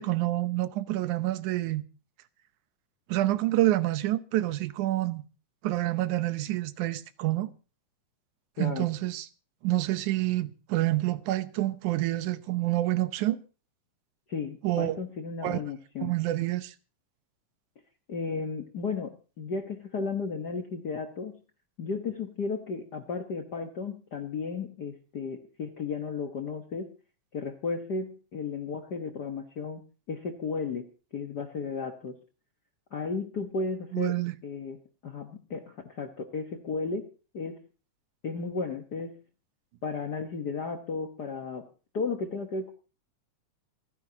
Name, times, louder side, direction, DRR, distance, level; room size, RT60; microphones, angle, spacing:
voice 1, 0.0-1.8 3.1-5.2 5.6-7.5 8.6-9.3 9.6-13.4 14.6-15.0 15.4-15.6 16.0-16.7 33.9-34.3, right 16 dB, 85° right, 2.3 m, -27 dB
voice 2, 8.6-8.9 14.3-16.2 18.1-21.4 21.8-26.9 27.3-32.2 32.9-34.2 34.4-37.1 37.3-37.6 38.2-39.2 39.8-41.7 41.9-42.7, left 4 dB, 55° left, 1.1 m, -34 dB
27.5 x 10.0 x 2.8 m
omnidirectional pair, 3.4 m